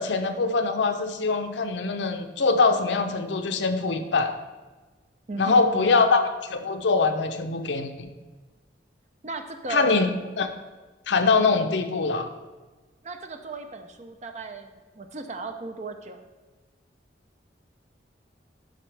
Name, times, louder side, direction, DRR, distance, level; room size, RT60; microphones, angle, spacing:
voice 1, 0.0-4.3 5.4-6.2 6.5-8.1 9.7-10.1 10.4-10.5 11.1-12.3, left 4 dB, 80° left, 7 dB, 0.7 m, -23 dB
voice 2, 5.3-6.2 9.2-10.1 13.0-16.2, right 3 dB, 40° right, 6 dB, 0.6 m, -36 dB
10.5 x 5.2 x 3.3 m, 1.3 s
head